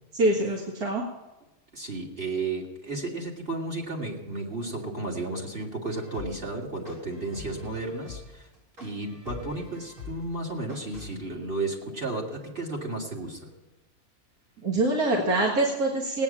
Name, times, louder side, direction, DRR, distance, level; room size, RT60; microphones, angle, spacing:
voice 1, 0.1-1.0 14.6-16.2, right 2 dB, 85° right, -2 dB, 2.3 m, -24 dB
voice 2, 1.7-8.5 8.8-13.5, right 2 dB, 35° right, 0 dB, 2.7 m, -33 dB
sound 1, 5.9-11.1, left 5 dB, 70° right, 6.6 m, -43 dB
18.0 x 9.4 x 7.4 m, 1.0 s
omnidirectional pair, 1.6 m